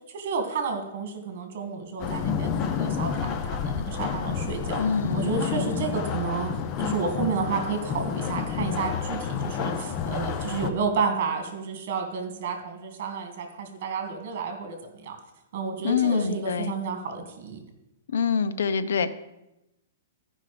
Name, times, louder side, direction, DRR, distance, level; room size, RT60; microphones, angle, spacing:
voice 1, 0.1-4.8 5.1-6.5 6.8-15.2 15.5-17.6, right 5 dB, 50° right, 5 dB, 2.1 m, -31 dB
sound 1, 2.0-10.7, left 7 dB, 25° left, 0.6 m, -29 dB
voice 2, 4.8-5.8 15.8-16.7 18.1-19.1, left 6 dB, 85° left, 11 dB, 0.7 m, -26 dB
13.5 x 5.5 x 5.0 m, 0.92 s
hypercardioid pair, 165°, 0 cm